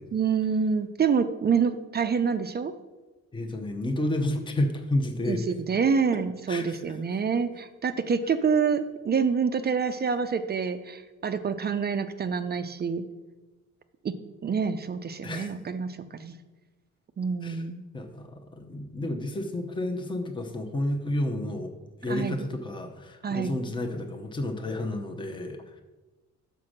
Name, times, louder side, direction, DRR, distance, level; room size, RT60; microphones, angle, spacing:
voice 1, 0.1-2.7 5.3-13.0 14.0-14.1 14.4-16.3 17.2-17.8 22.1-22.3 23.2-23.6, right 6 dB, 35° right, 9 dB, 0.5 m, -27 dB
voice 2, 3.3-5.4 6.5-7.0 15.2-15.5 17.4-17.6 17.9-21.7 22.0-25.8, left 1 dB, 15° left, 3 dB, 0.8 m, -31 dB
5.7 x 5.2 x 6.4 m, 1.2 s
cardioid pair, 90°, 30 cm